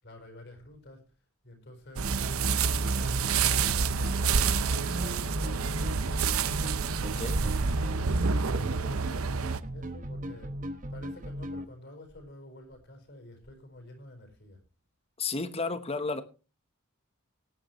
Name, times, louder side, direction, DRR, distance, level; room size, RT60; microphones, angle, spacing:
voice 1, 0.0-1.0 1.4-2.1 2.4-7.6 7.9-10.5 10.9-14.6, left 1 dB, 55° left, 5 dB, 4.7 m, -49 dB
sound 1, 2.0-11.6, right 1 dB, 40° right, 1.2 m, -37 dB
sound 2, 2.0-9.6, right 5 dB, 85° right, 0.7 m, -28 dB
voice 2, 7.0-7.4 15.2-16.2, left 3 dB, 30° left, 11 dB, 1.1 m, -32 dB
18.5 x 9.8 x 3.1 m, 0.33 s
head